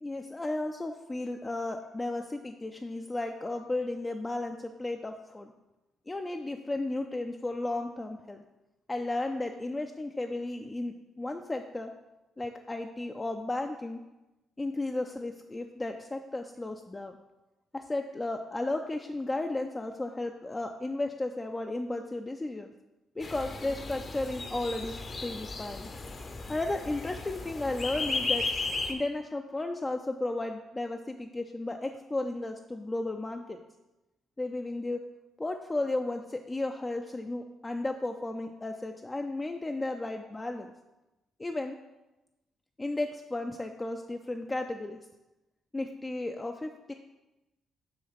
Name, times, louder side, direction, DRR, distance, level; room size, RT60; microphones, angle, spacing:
voice 1, 0.0-5.5 6.1-8.4 8.9-11.9 12.4-14.0 14.6-17.2 17.7-22.7 23.2-24.9 25.2-25.9 26.5-28.5 28.9-33.6 34.4-35.0 35.4-40.7 41.4-41.8 42.8-45.0 45.7-46.9, left 2 dB, 20° left, 4 dB, 0.4 m, -34 dB
sound 1, 23.2-28.9, left 3 dB, 40° left, 0.7 m, -35 dB
6.4 x 3.4 x 5.7 m, 1.0 s
cardioid pair, 90°, 0 cm